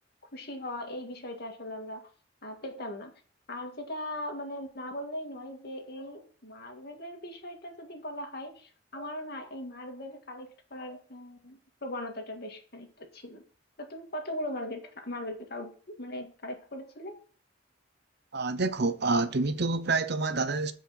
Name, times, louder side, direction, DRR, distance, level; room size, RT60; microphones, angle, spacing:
voice 1, 0.3-2.1 2.4-3.1 3.5-13.4 13.8-17.2, left 1 dB, 55° left, 2.0 m, -39 dB
voice 2, 18.3-20.7, right 3 dB, 60° right, 0.8 m, -27 dB
15.0 x 5.1 x 4.1 m
head